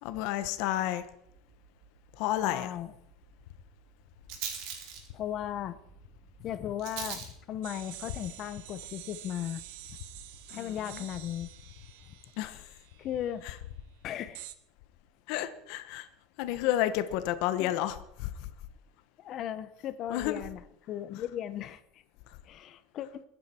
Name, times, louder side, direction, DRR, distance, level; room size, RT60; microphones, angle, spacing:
voice 1, 0.0-1.1 2.2-2.7 10.5-11.0 12.4-12.7 15.3-16.1 16.4-18.5 20.1-20.4, left 13 dB, 60° left, 11 dB, 1.2 m, -31 dB
Rattle, 1.2-11.2, right 7 dB, 65° right, 3.4 m, -46 dB
voice 2, 2.4-2.9 5.1-5.8 6.4-9.6 10.5-11.5 13.0-13.4 14.0-14.5 17.6-17.8 19.2-22.0 22.4-23.2, left 11 dB, 40° left, 13 dB, 1.0 m, -37 dB
sound 1, 7.6-13.3 14.3-14.5, right 15 dB, 80° right, 1.1 m, -48 dB
22.5 x 9.6 x 4.5 m, 0.73 s
cardioid pair, 155°, 0 cm